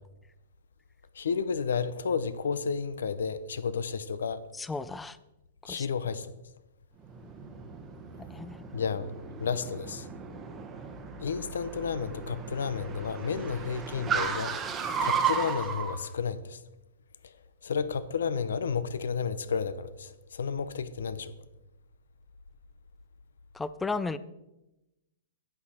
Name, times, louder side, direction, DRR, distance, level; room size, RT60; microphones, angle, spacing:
voice 1, 1.1-4.4 5.6-6.3 8.7-10.1 11.2-16.6 17.2-17.3 17.6-21.3, left 6 dB, 85° left, 14 dB, 0.7 m, -32 dB
voice 2, 4.6-5.2 5.7-5.8 8.3-8.6 23.6-24.2, left 3 dB, 5° left, 16 dB, 0.3 m, -34 dB
Car, 7.0-16.0, right 6 dB, 15° right, 0.9 m, -34 dB
11.0 x 8.6 x 4.4 m, 0.97 s
hypercardioid pair, 155°, 0 cm